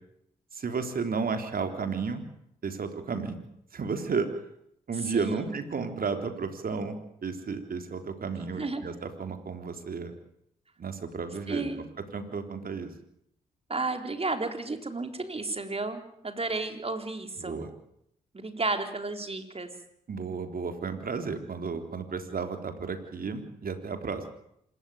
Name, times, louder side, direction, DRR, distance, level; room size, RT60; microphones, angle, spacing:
voice 1, 0.5-2.2 2.6-3.4 3.7-4.3 4.9-10.1 10.8-11.8 12.1-12.9 17.4-17.7 20.1-24.2, right 5 dB, 55° right, 7 dB, 3.7 m, -33 dB
voice 2, 5.0-5.4 8.5-8.8 11.5-11.9 13.7-17.6 18.3-19.7, right 3 dB, 35° right, 7 dB, 4.0 m, -32 dB
26.0 x 14.0 x 9.5 m, 0.75 s
hypercardioid pair, 40°, 18 cm